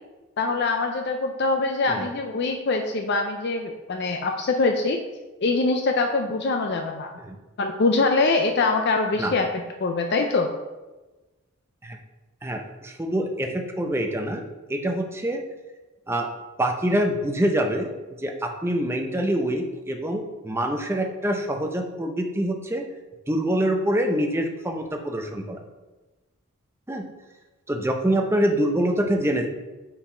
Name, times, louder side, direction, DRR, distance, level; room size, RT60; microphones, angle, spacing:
voice 1, 0.4-5.0 5.4-7.1 7.6-9.5 9.8-10.5, left 3 dB, 50° left, 4 dB, 0.4 m, -23 dB
voice 2, 12.4-14.4 14.7-15.4 16.1-16.3 16.6-17.9 18.2-22.9 23.3-25.6 26.9-27.1 27.7-29.5, right 1 dB, 10° right, 4 dB, 0.5 m, -25 dB
5.5 x 4.7 x 4.4 m, 1.1 s
head